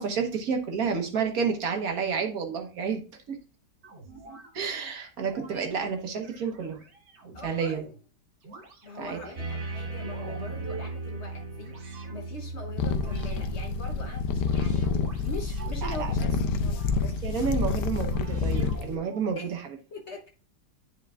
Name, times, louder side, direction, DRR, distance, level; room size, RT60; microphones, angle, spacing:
voice 1, 0.0-3.0 3.3-3.4 4.5-6.8 7.2-7.8 9.0-9.2 15.8-16.1 17.0-19.8, right 6 dB, 60° right, 1.5 m, -30 dB
sound 1, 3.8-4.5 5.2-5.7 6.2-8.0 8.4-9.3 9.8-11.0 11.6-12.2 12.8-13.4 13.9-15.8 16.3-17.5 18.0-19.3, right 2 dB, 80° right, 1.9 m, -46 dB
voice 2, 7.3-7.8 8.8-16.8 19.4-19.6 19.9-20.3, left 2 dB, 50° left, 1.0 m, -42 dB
sound 2, 9.4-15.0, right 2 dB, 45° right, 1.6 m, -38 dB
sound 3, 12.8-19.0, left 4 dB, 80° left, 1.2 m, -28 dB
9.9 x 4.6 x 2.4 m
omnidirectional pair, 1.8 m